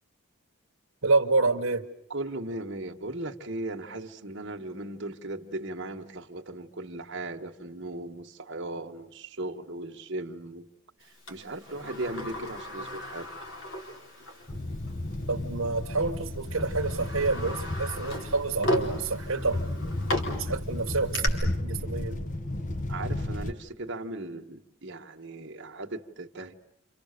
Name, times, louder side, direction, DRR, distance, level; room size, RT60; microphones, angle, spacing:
voice 1, 1.0-1.9 15.3-19.9 20.4-22.2, right 3 dB, 75° right, 1.5 m, -28 dB
voice 2, 2.1-10.7 11.3-13.3 22.9-26.5, right 2 dB, 55° right, 1.7 m, -37 dB
Sliding door, 11.3-14.5 14.9-15.0 15.9-16.1 16.6-21.3, left 1 dB, 60° left, 4.1 m, -35 dB
sound 1, 14.5-23.5, left 1 dB, 35° left, 1.1 m, -34 dB
30.0 x 27.0 x 6.8 m
head